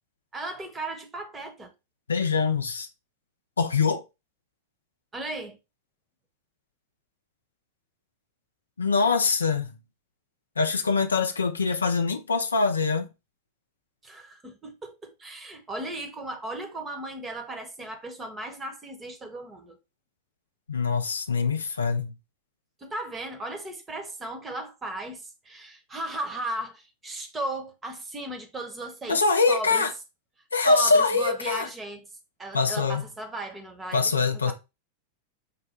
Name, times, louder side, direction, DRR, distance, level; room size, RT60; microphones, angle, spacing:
voice 1, 0.3-1.7 5.1-5.6 14.0-19.8 22.8-29.9 30.7-32.1 32.4-34.5, right 2 dB, 15° right, 0.9 m, -36 dB
voice 2, 2.1-2.9 3.6-4.0 8.8-9.7 10.6-13.1 20.7-22.1 29.1-29.9 30.5-31.7 32.5-33.1 33.9-34.5, left 4 dB, 75° left, 0.5 m, -23 dB
5.2 x 2.2 x 4.3 m
figure-of-eight pair, 90°, 0 cm